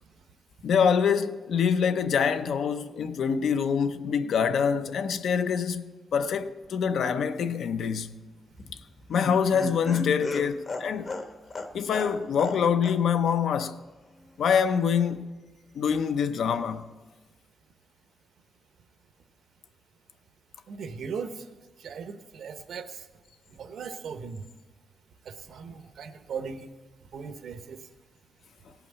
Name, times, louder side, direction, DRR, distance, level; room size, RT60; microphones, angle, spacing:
voice 1, 0.6-8.2 9.1-11.1 11.7-13.8 14.4-15.3 15.8-16.9, left 7 dB, 65° left, 0.6 m, -25 dB
Laughter, 8.5-12.6 12.8-13.0 13.3-13.4, left 3 dB, 35° left, 0.8 m, -35 dB
voice 2, 20.7-21.4 21.8-23.0 23.6-24.4 25.3-26.7 27.1-27.8, right 6 dB, 65° right, 0.8 m, -38 dB
17.0 x 5.8 x 8.1 m
wide cardioid pair, 175°, 0 cm